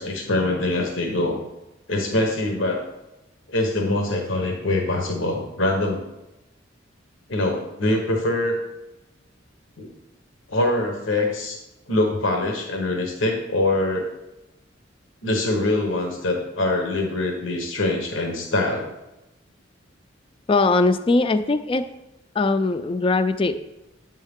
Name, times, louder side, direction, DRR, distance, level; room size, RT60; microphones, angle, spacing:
voice 1, 0.0-1.4 1.9-2.8 3.5-6.0 7.3-8.6 9.8-9.9 10.5-11.6 11.9-14.1 15.2-18.9, left 2 dB, 85° left, 1 dB, 1.1 m, -24 dB
voice 2, 20.5-21.8 22.3-23.6, left 3 dB, 25° left, 11 dB, 0.3 m, -20 dB
8.2 x 5.4 x 3.6 m, 0.95 s
head